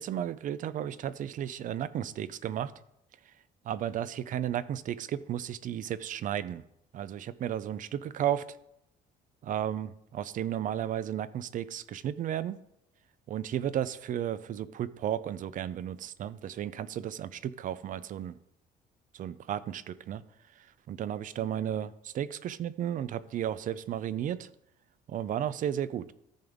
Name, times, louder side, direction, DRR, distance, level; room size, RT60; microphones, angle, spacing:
voice 1, 0.0-2.7 3.6-6.6 6.9-8.6 9.4-12.6 13.3-18.4 19.1-20.2 20.6-24.5 25.1-26.1, right 10 dB, 50° right, 16 dB, 0.5 m, -34 dB
14.0 x 5.2 x 3.6 m, 0.81 s
cardioid pair, 110°, 17 cm